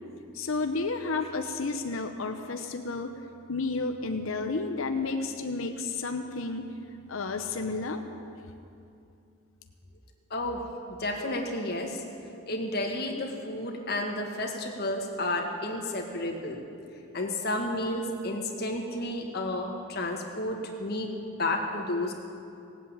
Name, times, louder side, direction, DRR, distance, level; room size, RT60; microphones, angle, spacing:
voice 1, 0.3-3.1 3.5-6.7 7.1-8.0, left 3 dB, 65° left, 6 dB, 0.8 m, -31 dB
voice 2, 10.3-10.6 11.0-12.0 12.5-16.6 17.1-21.1 21.4-22.1, left 1 dB, 45° left, 1 dB, 1.7 m, -31 dB
17.5 x 8.1 x 8.8 m, 2.6 s
head